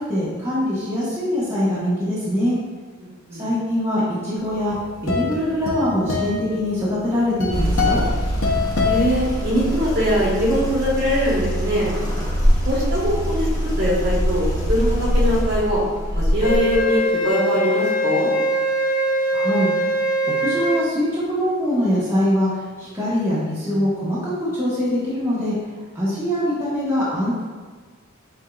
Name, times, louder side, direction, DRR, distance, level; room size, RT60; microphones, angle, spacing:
voice 1, 0.0-2.6 3.4-4.7 5.0-8.0 19.3-19.7 20.4-22.5 22.8-25.5 25.9-27.4, equal, 10° right, -11 dB, 1.2 m, -23 dB
voice 2, 3.0-3.4 8.8-11.9 12.6-13.5 13.8-15.8 16.1-18.3, equal, 50° right, -7 dB, 1.5 m, -22 dB
sound 1, 4.5-9.9, left 4 dB, 75° left, 0.7 m, -25 dB
sound 2, 7.5-16.8, equal, 20° left, 1.0 m, -23 dB
Wind instrument woodwind instrument, 16.4-20.9, equal, 40° left, 0.4 m, -22 dB
8.1 x 2.7 x 2.4 m, 1.4 s
head